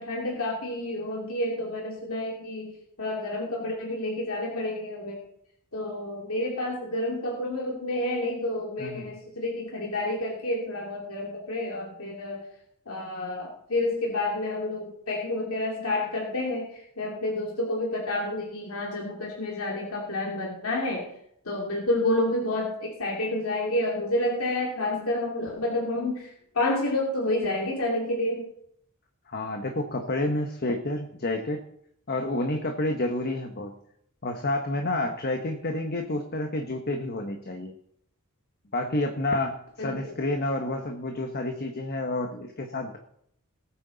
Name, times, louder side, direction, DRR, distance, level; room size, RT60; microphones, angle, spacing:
voice 1, 0.0-5.2 5.7-12.5 12.9-21.1 21.4-28.5 39.8-40.2, left 1 dB, 70° left, -2 dB, 2.6 m, -29 dB
voice 2, 29.3-31.6 32.1-33.7 34.2-37.7 38.7-43.0, left 2 dB, 45° left, 4 dB, 1.2 m, -29 dB
19.0 x 9.1 x 4.0 m, 0.71 s
head